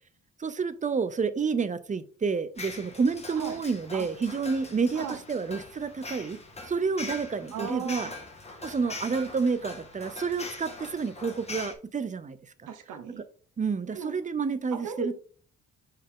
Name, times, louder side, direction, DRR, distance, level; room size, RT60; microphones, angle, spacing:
voice 1, 0.4-6.4 6.7-8.1 8.6-12.4 13.6-15.2, right 5 dB, 25° right, 0.6 m, -29 dB
sound 1, 2.6-11.7, left 3 dB, 20° left, 1.8 m, -42 dB
voice 2, 7.5-8.1 12.7-13.2 13.9-14.1 14.7-15.2, right 6 dB, 80° right, 1.1 m, -36 dB
5.6 x 4.8 x 3.7 m
cardioid pair, 90°, 30 cm